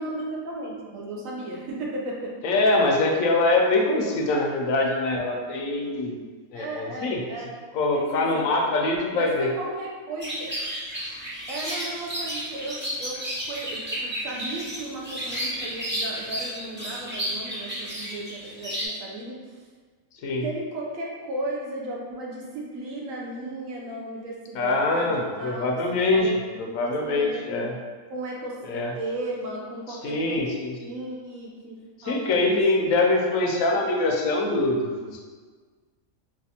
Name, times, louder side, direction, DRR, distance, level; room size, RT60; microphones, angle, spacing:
voice 1, 0.0-2.3 6.5-7.5 7.9-8.5 9.1-10.5 11.5-19.6 20.3-25.7 26.1-27.7 28.1-30.4 30.8-31.8 32.0-32.9, right 2 dB, 75° right, -2 dB, 1.1 m, -35 dB
voice 2, 2.4-6.2 6.5-7.2 7.7-9.5 20.2-20.4 24.6-26.3 26.6-27.7 28.7-28.9 30.0-31.0 32.0-35.3, left 2 dB, 80° left, 1 dB, 1.0 m, -24 dB
sound 1, 10.2-18.8, equal, 10° right, 0.5 m, -32 dB
4.1 x 2.4 x 2.8 m, 1.5 s
omnidirectional pair, 1.4 m